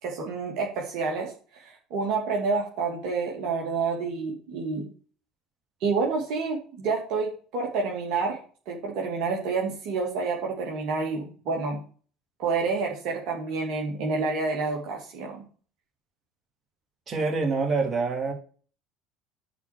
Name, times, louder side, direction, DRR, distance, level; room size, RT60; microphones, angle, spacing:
voice 1, 0.0-4.8 5.8-8.4 8.7-11.8 12.4-15.4, right 4 dB, 55° right, -1 dB, 2.6 m, -29 dB
voice 2, 17.1-18.3, right 4 dB, 30° right, 3 dB, 3.4 m, -26 dB
11.0 x 4.7 x 6.8 m, 0.39 s
figure-of-eight pair, 65°, 0 cm